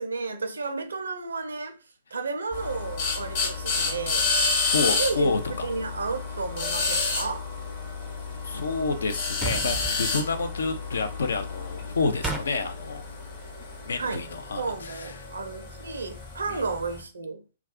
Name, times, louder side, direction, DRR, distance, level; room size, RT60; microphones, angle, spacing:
voice 1, 0.0-1.8 2.1-4.3 4.8-5.3 5.6-7.5 14.0-14.2 14.6-17.4, right 4 dB, 70° right, 0.5 m, -32 dB
sound 1, 2.5-17.0, left 4 dB, 45° left, 1.0 m, -30 dB
voice 2, 4.7-5.7 8.4-13.0 13.9-15.1 16.5-16.6, left 4 dB, 65° left, 0.4 m, -29 dB
sound 2, 9.4-10.0 12.2-12.5, right 4 dB, 10° right, 0.4 m, -30 dB
2.3 x 2.3 x 3.5 m
figure-of-eight pair, 115°, 0 cm